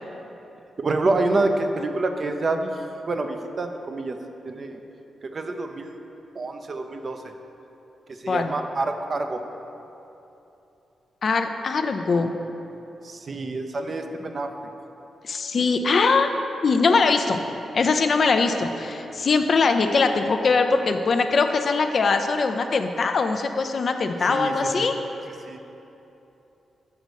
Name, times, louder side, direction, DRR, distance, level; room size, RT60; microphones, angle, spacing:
voice 1, 0.8-2.7 3.1-4.2 4.5-4.8 5.2-5.9 6.4-7.2 8.2-9.4 13.0-14.7 24.3-24.9 25.5-25.6, right 2 dB, 50° right, 5 dB, 0.6 m, -27 dB
voice 2, 11.2-12.3 15.2-16.3 16.6-17.4 17.7-24.9, left 4 dB, 60° left, 6 dB, 0.5 m, -21 dB
6.7 x 4.0 x 6.4 m, 2.9 s
supercardioid pair, 40°, 0 cm